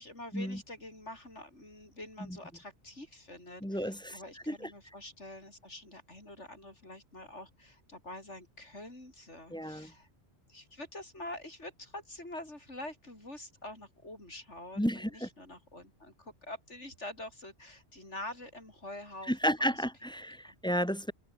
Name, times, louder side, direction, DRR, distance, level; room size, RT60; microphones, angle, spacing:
voice 1, 0.0-10.1 10.5-19.8 20.4-20.6, left 1 dB, 80° left, 7.7 m, -46 dB
voice 2, 3.6-4.2 4.5-4.7 9.5-9.9 14.8-15.3 19.3-21.1, equal, 5° left, 1.4 m, -32 dB
open air
omnidirectional pair, 1.2 m